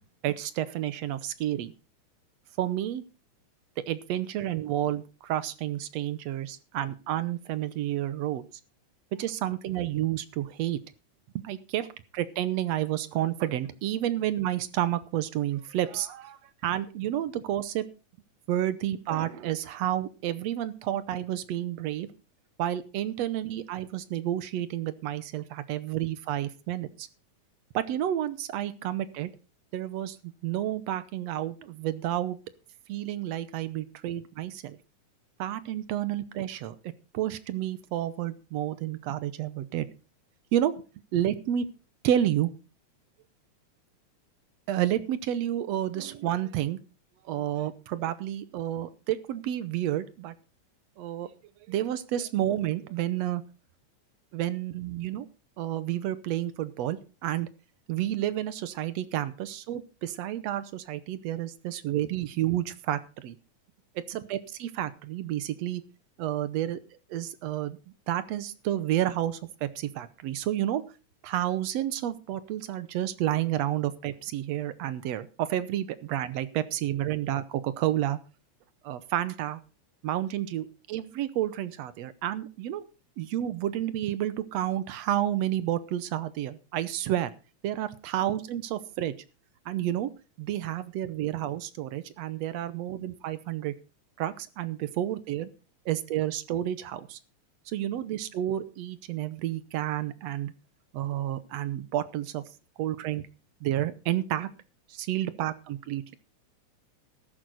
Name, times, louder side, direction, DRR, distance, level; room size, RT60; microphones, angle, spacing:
voice 1, 0.2-1.7 2.6-3.0 3.9-8.4 9.2-10.8 11.4-11.9 12.1-17.9 18.5-22.1 22.6-27.1 27.7-29.3 29.7-32.4 32.9-34.8 35.4-36.8 37.1-39.9 40.5-40.7 41.1-41.7 42.0-42.5 44.7-46.8 47.3-50.3 51.0-51.3 51.7-53.4 54.3-55.3 55.6-57.5 57.9-63.4 64.0-65.8 66.2-66.8 67.1-67.8 68.1-70.8 71.2-78.2 78.8-79.6 80.0-82.8 83.2-87.3 87.6-89.1 89.7-90.1 90.4-93.7 94.2-95.5 95.9-97.2 97.7-100.5 100.9-102.4 102.8-103.2 103.6-104.5 104.9-106.1, right 12 dB, 70° right, 15 dB, 1.9 m, -30 dB
14.0 x 11.0 x 4.1 m, 0.34 s
omnidirectional pair, 3.4 m